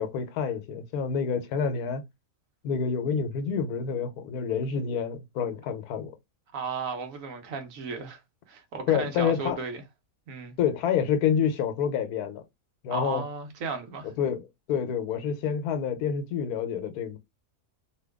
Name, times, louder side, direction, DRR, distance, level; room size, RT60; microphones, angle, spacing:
voice 1, 0.0-2.0 2.6-6.1 8.9-9.6 10.6-12.4 12.8-13.2 14.2-17.2, left 7 dB, 90° left, 1.2 m, -28 dB
voice 2, 6.5-8.2 8.5-9.8 10.3-10.5 12.9-14.1, right 4 dB, 65° right, 1.2 m, -34 dB
3.0 x 2.2 x 3.4 m
omnidirectional pair, 1.6 m